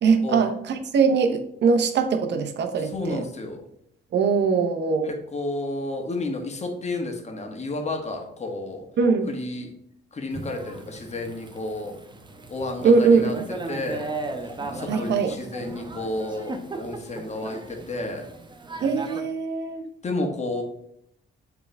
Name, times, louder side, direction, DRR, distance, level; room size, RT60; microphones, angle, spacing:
voice 1, 0.0-3.2 4.1-5.1 9.0-9.3 12.8-13.5 14.9-15.3 18.8-19.8, right 5 dB, 60° right, 6 dB, 0.9 m, -21 dB
voice 2, 2.8-3.6 5.0-8.9 9.3-9.7 10.1-12.0 12.5-13.3 13.7-18.3 20.0-20.6, left 2 dB, 35° left, 3 dB, 1.5 m, -31 dB
Thunder / Rain, 10.3-19.2, right 2 dB, 25° right, 0.9 m, -37 dB
8.0 x 3.5 x 3.4 m, 0.74 s
cardioid pair, 90°, 20 cm